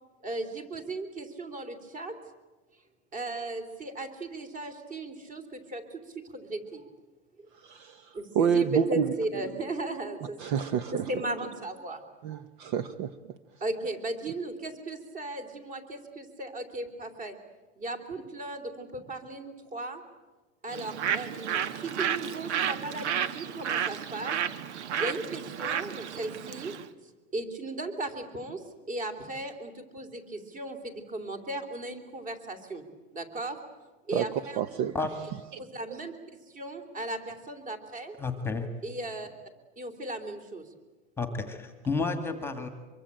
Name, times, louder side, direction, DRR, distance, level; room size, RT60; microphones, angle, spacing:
voice 1, 0.2-2.1 3.1-6.0 6.3-6.8 8.1-10.6 10.9-12.0 13.6-17.3 17.8-20.0 20.6-24.4 25.0-26.7 27.3-28.6 28.9-32.8 33.1-33.6 34.1-34.6 35.6-36.2 36.5-38.2 38.8-39.3 39.8-40.6, right 2 dB, 25° right, 9 dB, 3.3 m, -36 dB
voice 2, 7.6-9.1 10.4-11.0 12.2-13.1 34.1-34.9 35.5-35.6 35.9-36.0, right 7 dB, 45° right, 13 dB, 1.0 m, -28 dB
Bird, 20.7-26.9, right 9 dB, 80° right, 1.6 m, -32 dB
voice 3, 38.2-38.7 41.2-42.7, left 4 dB, 5° left, 8 dB, 1.8 m, -31 dB
24.5 x 23.0 x 9.0 m, 1.3 s
supercardioid pair, 155°, 34 cm